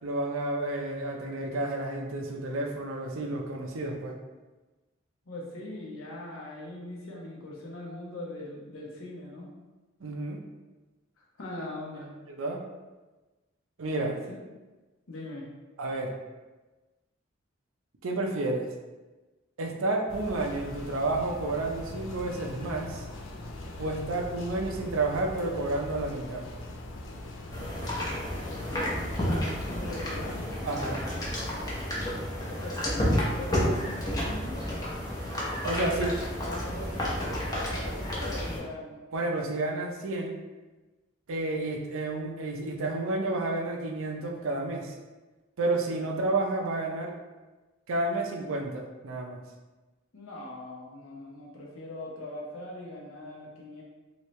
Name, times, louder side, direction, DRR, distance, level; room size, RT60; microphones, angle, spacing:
voice 1, 0.0-4.2 10.0-10.4 12.3-12.6 13.8-14.2 15.8-16.1 18.0-18.7 19.6-23.0 23.8-26.4 30.7-31.0 35.6-36.1 39.1-40.4 41.3-44.9 45.6-47.1 47.9-49.4, right 2 dB, 85° right, 2 dB, 0.5 m, -30 dB
voice 2, 5.3-9.5 11.4-12.1 14.3-14.4 15.1-15.5 28.6-30.6 32.5-34.6 35.8-36.1 36.4-39.0 50.1-53.8, left 1 dB, 85° left, -3 dB, 0.9 m, -41 dB
sound 1, 20.1-30.5, left 2 dB, 70° left, 0.5 m, -41 dB
sound 2, 27.5-38.6, equal, 20° left, 0.7 m, -31 dB
3.0 x 2.7 x 3.1 m, 1.2 s
head